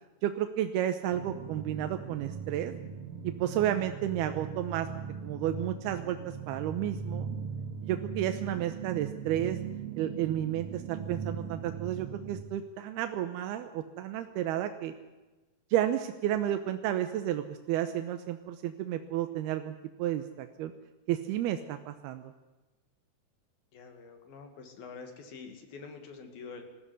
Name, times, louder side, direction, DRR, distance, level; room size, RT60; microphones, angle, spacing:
voice 1, 0.2-2.7 3.2-4.9 5.2-6.2 6.5-7.3 7.8-9.6 10.0-14.9 15.7-20.7 21.1-22.3, right 11 dB, 85° right, 7 dB, 2.9 m, -32 dB
sound 1, 1.1-12.4, right 6 dB, 65° right, 3.9 m, -39 dB
voice 2, 23.7-26.6, left 5 dB, 70° left, 6 dB, 4.1 m, -46 dB
20.5 x 15.0 x 9.7 m, 1.2 s
omnidirectional pair, 4.5 m